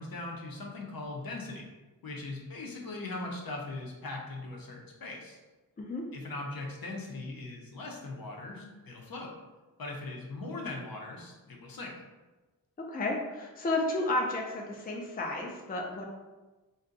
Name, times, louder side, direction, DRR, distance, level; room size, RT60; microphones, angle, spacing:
voice 1, 0.0-1.7 2.0-5.4 6.1-9.3 9.8-11.9, left 2 dB, 65° left, -1 dB, 0.7 m, -40 dB
voice 2, 5.8-6.1 12.8-16.0, left 2 dB, 25° left, 0 dB, 0.4 m, -32 dB
2.6 x 2.2 x 3.8 m, 1.2 s
wide cardioid pair, 90°, 38 cm